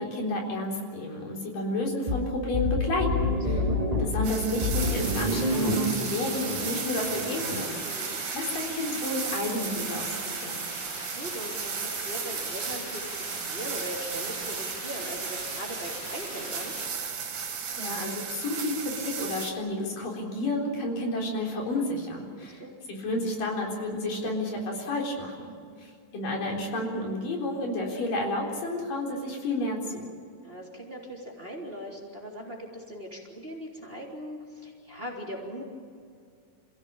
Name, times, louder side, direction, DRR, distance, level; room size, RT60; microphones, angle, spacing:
voice 1, 0.0-3.6 4.0-7.7 8.0-10.1 10.4-10.6 17.4-22.6 22.9-25.5 25.8-30.1, left 1 dB, 80° left, -1 dB, 5.5 m, -31 dB
sound 1, 2.1-7.7, left 2 dB, 45° right, 0.5 m, -29 dB
sound 2, 4.2-19.5, right 6 dB, 70° right, 3.6 m, -35 dB
sound 3, 4.8-16.9, left 3 dB, 65° left, 4.6 m, -42 dB
voice 2, 7.8-8.2 10.9-16.7 22.4-22.7 30.4-35.6, equal, 15° right, -2 dB, 3.4 m, -40 dB
28.0 x 16.5 x 8.8 m, 2.2 s
omnidirectional pair, 3.8 m